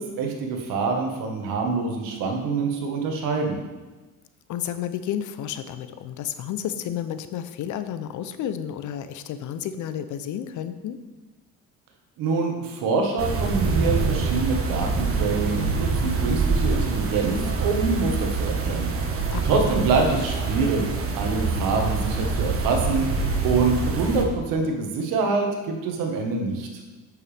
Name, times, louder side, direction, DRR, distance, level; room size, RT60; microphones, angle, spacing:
voice 1, 0.0-3.6 12.2-18.9 19.4-20.8 21.2-23.0 23.4-26.7, right 4 dB, 75° right, 2 dB, 1.7 m, -25 dB
voice 2, 4.5-11.0 19.3-19.7, left 10 dB, 60° left, 11 dB, 0.7 m, -31 dB
sound 1, 13.2-24.2, right 4 dB, 40° right, 1.5 m, -25 dB
8.4 x 7.0 x 3.5 m, 1.2 s
supercardioid pair, 70°, 34 cm